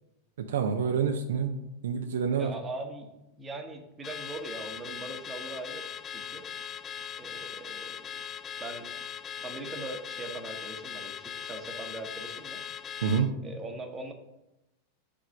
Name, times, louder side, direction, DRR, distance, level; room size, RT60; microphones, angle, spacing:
voice 1, 0.5-1.5 1.8-2.5 13.0-13.3, right 6 dB, 60° right, 6 dB, 0.5 m, -27 dB
voice 2, 2.4-3.1 3.4-6.4 7.2-8.0 8.6-9.1 9.4-12.6 13.4-14.1, right 2 dB, 15° right, 4 dB, 1.0 m, -41 dB
Car / Alarm, 4.0-13.3, left 8 dB, 25° left, 0.3 m, -40 dB
4.9 x 3.7 x 5.7 m, 0.93 s
figure-of-eight pair, 90°, 0 cm